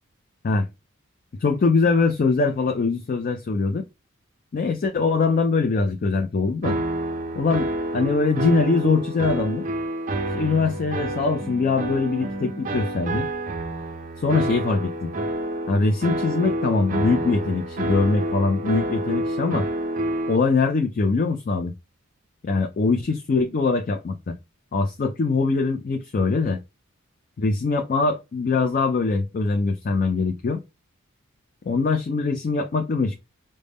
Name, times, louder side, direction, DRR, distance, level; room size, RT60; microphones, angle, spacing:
voice 1, 1.4-3.8 4.5-6.8 7.3-9.7 10.3-13.3 14.2-15.1 15.7-19.7 20.3-21.7 22.4-24.4 24.7-26.6 27.4-30.6 31.7-33.1, left 4 dB, 40° left, 0.3 m, -22 dB
sound 1, 6.6-20.4, right 1 dB, 35° right, 0.4 m, -28 dB
5.1 x 2.1 x 3.4 m
head